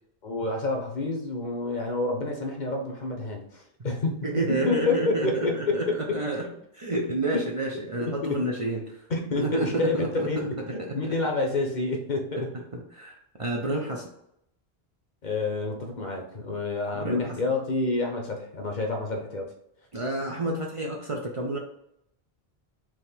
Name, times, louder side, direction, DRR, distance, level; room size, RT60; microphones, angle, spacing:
voice 1, 0.2-4.2 4.7-6.6 8.2-8.4 9.1-12.5 15.2-19.5, left 3 dB, 50° left, 2 dB, 0.8 m, -29 dB
voice 2, 4.2-6.5 6.7-9.0 9.4-10.9 12.7-14.1 16.9-17.4 19.9-21.6, right 2 dB, 40° right, -1 dB, 0.6 m, -30 dB
3.7 x 2.9 x 4.2 m, 0.76 s
omnidirectional pair, 1.0 m